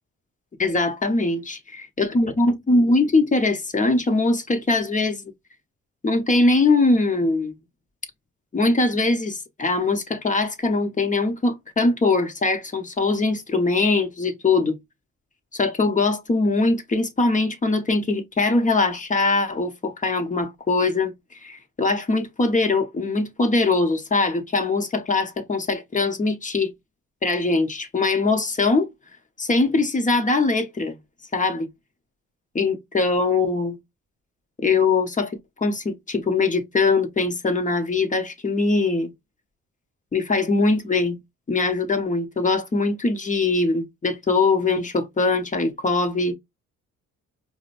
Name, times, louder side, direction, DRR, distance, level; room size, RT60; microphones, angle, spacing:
voice 1, 0.6-5.2 6.0-7.5 8.5-14.8 15.5-21.1 21.4-26.7 27.2-28.9 29.4-31.0 31.3-31.7 32.5-33.8 34.6-39.1 40.1-41.2 41.5-46.3, left 3 dB, 25° left, 0.9 m, -22 dB
4.9 x 2.1 x 2.5 m
cardioid pair, 90°, 30 cm